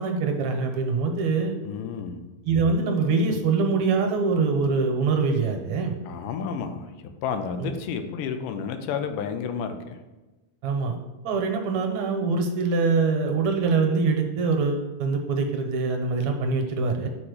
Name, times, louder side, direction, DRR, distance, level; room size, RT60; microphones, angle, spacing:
voice 1, 0.0-1.6 2.5-6.0 7.6-7.8 10.6-11.0 11.2-17.1, right 4 dB, 70° right, 3 dB, 2.0 m, -24 dB
voice 2, 1.6-2.3 6.1-10.0, left 6 dB, 90° left, 7 dB, 2.3 m, -31 dB
7.0 x 4.2 x 6.6 m, 1.1 s
omnidirectional pair, 3.7 m